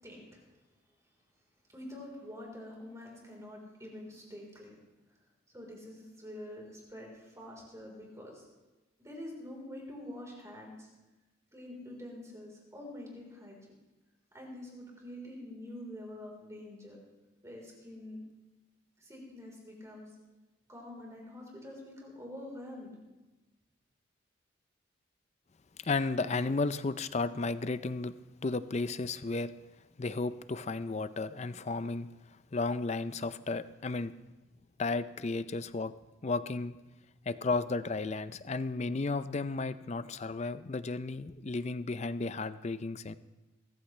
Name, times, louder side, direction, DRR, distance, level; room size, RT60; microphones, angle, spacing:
voice 1, 0.0-0.4 1.7-4.7 5.5-8.5 9.0-10.9 11.5-13.7 14.3-17.0 17.4-18.2 19.0-20.1 20.7-23.0, left 1 dB, 15° right, -2 dB, 4.0 m, -46 dB
voice 2, 25.8-28.1 28.4-29.5 30.0-32.1 32.5-34.1 34.8-35.9 36.2-36.8 37.3-43.1, left 3 dB, 35° left, 13 dB, 0.5 m, -33 dB
22.5 x 14.5 x 3.3 m, 1.1 s
head